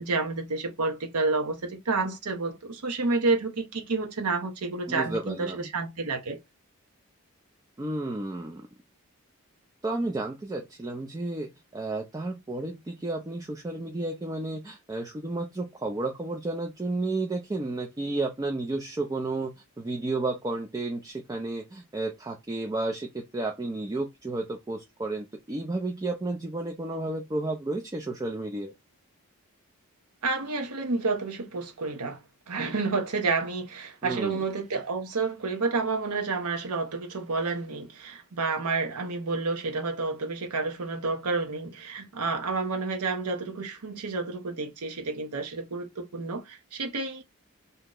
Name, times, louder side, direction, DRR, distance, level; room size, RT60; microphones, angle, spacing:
voice 1, 0.0-6.4 30.2-32.2 32.5-47.2, right 3 dB, 90° right, 0.8 m, -30 dB
voice 2, 4.9-5.7 7.8-8.7 9.8-19.5 19.8-28.7 34.0-34.4, right 2 dB, 15° right, 0.3 m, -32 dB
2.8 x 2.0 x 3.6 m
head